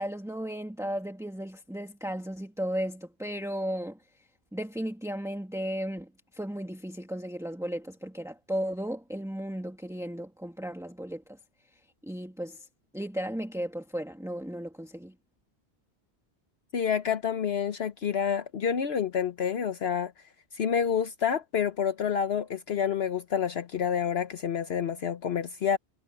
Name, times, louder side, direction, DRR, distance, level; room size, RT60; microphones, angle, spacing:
voice 1, 0.0-4.0 4.5-11.4 12.0-12.7 12.9-15.1, equal, 5° right, 1.9 m, -35 dB
voice 2, 16.7-20.1 20.5-25.8, left 7 dB, 65° left, 1.1 m, -28 dB
omnidirectional pair, 1.1 m